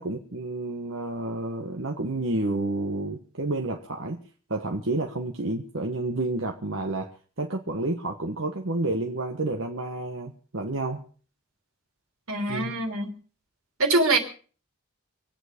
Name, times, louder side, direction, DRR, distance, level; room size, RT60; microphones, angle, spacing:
voice 1, 0.0-4.2 4.5-11.0 12.5-12.7, right 2 dB, 65° right, 1 dB, 1.4 m, -30 dB
voice 2, 12.3-13.1 13.8-14.2, right 2 dB, 85° right, 4 dB, 3.0 m, -23 dB
25.0 x 9.1 x 5.2 m, 0.40 s
head